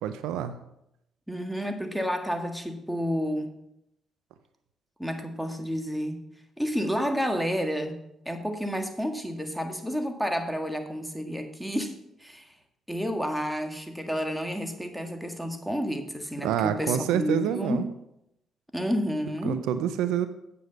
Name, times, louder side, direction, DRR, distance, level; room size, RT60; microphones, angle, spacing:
voice 1, 0.0-0.5 16.4-17.8 19.4-20.3, right 10 dB, 80° right, 11 dB, 0.6 m, -27 dB
voice 2, 1.3-3.5 5.0-6.2 6.6-8.0 8.2-11.9 12.2-12.5 12.9-17.9 18.7-19.6, equal, ahead, 5 dB, 1.7 m, -30 dB
8.4 x 7.7 x 5.3 m, 0.81 s
hypercardioid pair, 55°, 0 cm